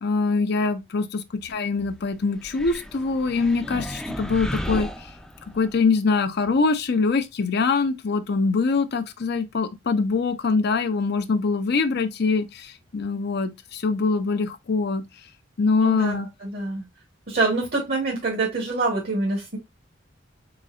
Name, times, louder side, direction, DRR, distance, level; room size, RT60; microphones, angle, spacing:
voice 1, 0.0-5.1 5.5-15.0 15.6-16.3, left 4 dB, 60° left, 0.6 m, -23 dB
sound 1, 2.4-5.8, equal, 5° left, 0.5 m, -34 dB
voice 2, 15.8-16.9 17.3-19.6, right 3 dB, 55° right, 1.2 m, -26 dB
4.0 x 3.9 x 2.4 m
head